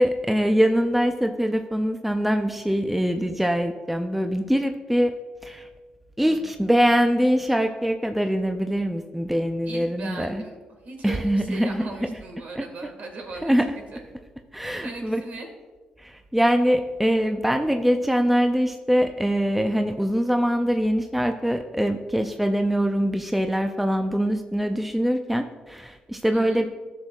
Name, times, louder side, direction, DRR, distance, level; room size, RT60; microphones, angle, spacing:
voice 1, 0.0-5.2 5.4-5.7 6.2-10.4 11.0-11.8 12.6-12.7 13.4-13.7 14.5-15.2 16.0-26.7, equal, 5° right, 6 dB, 0.5 m, -23 dB
voice 2, 9.7-10.6 10.9-13.5 13.9-14.0 14.8-15.5 26.3-26.6, right 3 dB, 60° right, 2 dB, 1.9 m, -38 dB
12.0 x 6.3 x 2.5 m, 1.3 s
supercardioid pair, 55°, 3 cm